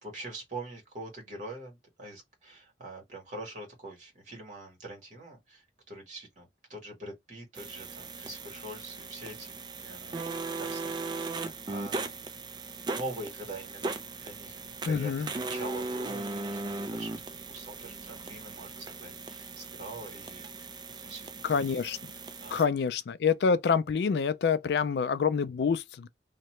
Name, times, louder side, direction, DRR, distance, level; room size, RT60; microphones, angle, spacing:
voice 1, 0.0-12.2 12.8-20.7 21.0-21.6 22.4-22.6 24.9-25.0, right 1 dB, 45° right, 1.5 m, -44 dB
sound 1, 7.5-22.7, right 3 dB, 25° right, 0.3 m, -38 dB
voice 2, 14.9-15.3 21.4-22.0 22.5-26.1, left 6 dB, 65° left, 0.3 m, -27 dB
2.8 x 2.2 x 3.0 m
head